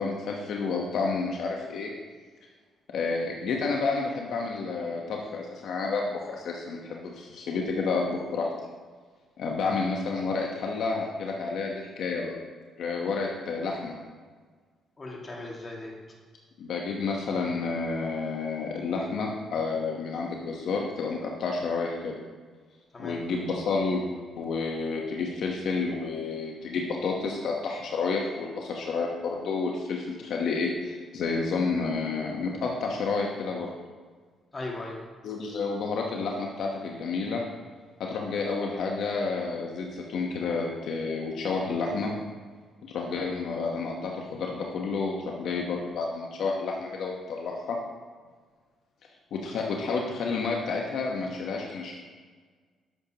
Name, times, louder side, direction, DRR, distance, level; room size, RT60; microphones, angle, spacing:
voice 1, 0.0-1.9 2.9-8.5 9.4-12.3 12.8-13.9 16.6-22.2 23.0-24.0 24.4-33.7 35.2-37.4 38.0-42.1 42.9-47.8 49.3-51.9, left 4 dB, 70° left, 0 dB, 1.0 m, -30 dB
voice 2, 15.0-16.0 22.9-23.2 34.5-35.0, left 2 dB, 30° left, -2 dB, 2.0 m, -38 dB
11.0 x 6.8 x 2.9 m, 1.5 s
cardioid pair, 90°, 0 cm